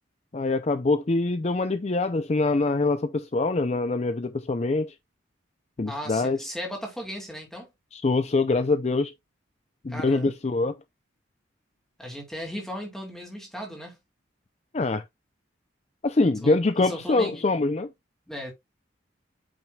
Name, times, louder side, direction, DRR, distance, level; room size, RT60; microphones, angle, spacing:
voice 1, 0.3-5.0 5.8-6.4 7.9-9.1 9.8-10.8 14.7-15.0 16.0-17.9, left 3 dB, 35° left, 0.4 m, -24 dB
voice 2, 5.9-7.7 9.9-10.3 12.0-14.0 16.4-17.4 18.3-18.5, equal, ahead, 2.6 m, -36 dB
8.7 x 6.0 x 2.3 m
head